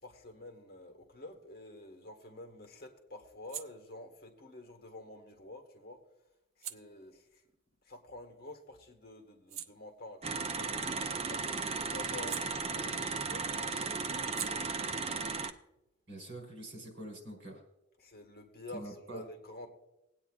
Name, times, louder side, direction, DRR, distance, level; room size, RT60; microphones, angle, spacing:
voice 1, 0.0-6.0 6.6-7.4 7.8-10.7 11.3-15.1 18.0-19.7, left 2 dB, 50° left, 2 dB, 1.6 m, -49 dB
sound 1, 1.7-8.6 9.0-13.2 13.5-16.9, right 10 dB, 80° right, 0.5 m, -51 dB
sound 2, 10.2-15.5, right 4 dB, 30° right, 0.5 m, -35 dB
voice 2, 16.1-17.6 18.7-19.2, right 1 dB, 60° right, 1 dB, 3.8 m, -45 dB
20.5 x 8.8 x 2.4 m, 0.90 s
head